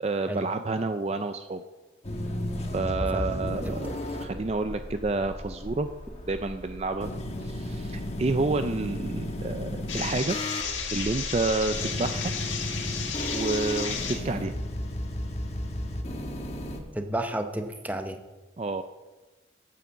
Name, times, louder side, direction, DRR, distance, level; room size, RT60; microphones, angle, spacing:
voice 1, 0.0-1.6 2.7-5.9 6.2-7.1 7.4-10.4 10.9-12.3 13.3-14.5 18.6-18.8, right 3 dB, 35° right, 9 dB, 0.4 m, -29 dB
sound 1, 2.0-16.8, left 1 dB, 35° left, 1.2 m, -34 dB
sound 2, 9.9-14.2, left 7 dB, 90° left, 1.9 m, -33 dB
voice 2, 16.9-18.2, right 1 dB, 10° right, 7 dB, 0.7 m, -31 dB
8.9 x 8.5 x 7.3 m, 1.2 s
head